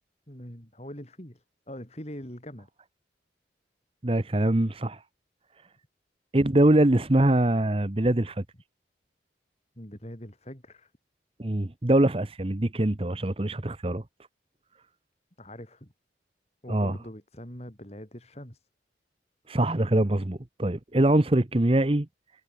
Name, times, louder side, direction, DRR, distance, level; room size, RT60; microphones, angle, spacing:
voice 1, 0.3-2.7 9.8-10.9 15.4-15.9 16.6-18.7, equal, 35° left, 4.7 m, -43 dB
voice 2, 4.0-5.0 6.3-8.4 11.4-14.0 16.7-17.0 19.5-22.1, right 1 dB, 30° right, 0.9 m, -23 dB
head